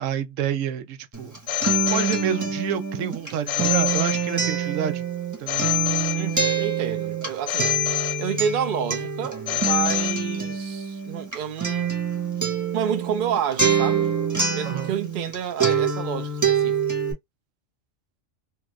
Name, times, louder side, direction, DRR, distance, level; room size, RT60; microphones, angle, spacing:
voice 1, 0.0-1.3 1.9-5.1 5.4-5.7 14.6-14.9, right 9 dB, 85° right, 1.0 m, -28 dB
Acoustic guitar, 1.1-15.3 15.6-17.1, right 6 dB, 15° right, 0.8 m, -26 dB
Telephone, 1.5-2.7 3.5-4.7 5.5-6.7 7.5-8.7 9.5-10.7, left 13 dB, 75° left, 0.9 m, -27 dB
voice 2, 6.1-7.8 8.2-11.9 12.7-16.8, right 8 dB, 55° right, 0.6 m, -29 dB
2.8 x 2.4 x 3.0 m
omnidirectional pair, 1.3 m